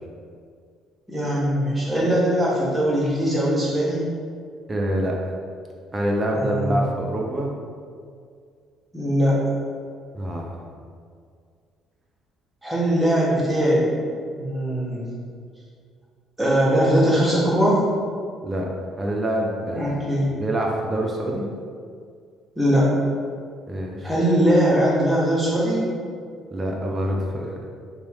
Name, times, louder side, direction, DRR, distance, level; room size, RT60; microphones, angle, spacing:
voice 1, 1.1-4.0 6.3-6.8 8.9-9.4 12.6-13.9 14.4-15.0 16.4-17.8 19.7-20.3 22.6-22.9 24.0-25.9, equal, 10° right, -7 dB, 1.0 m, -20 dB
voice 2, 4.7-5.2 5.9-7.5 10.1-10.5 18.4-18.7 19.0-20.0 20.3-21.5 23.7-24.1 26.5-27.5, right 1 dB, 25° right, -1 dB, 0.4 m, -26 dB
3.0 x 2.3 x 2.9 m, 2.2 s
figure-of-eight pair, 50°, 0 cm